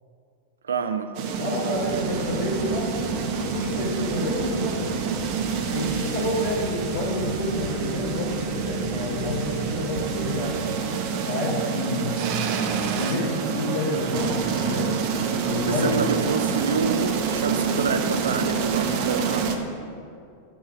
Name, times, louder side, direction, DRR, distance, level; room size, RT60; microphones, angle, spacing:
voice 1, 0.6-1.4 15.7-19.6, right 5 dB, 70° right, 9 dB, 0.4 m, -28 dB
sound 1, 1.1-19.6, right 6 dB, 45° right, 0.7 m, -27 dB
voice 2, 1.4-2.9 3.4-5.0 5.6-10.6 11.2-12.6 12.9-14.9 15.4-16.0, left 1 dB, 65° left, -4 dB, 1.5 m, -29 dB
sound 2, 1.7-10.6, left 1 dB, 25° left, 1.6 m, -40 dB
8.8 x 3.9 x 6.2 m, 2.4 s
figure-of-eight pair, 90°, 0 cm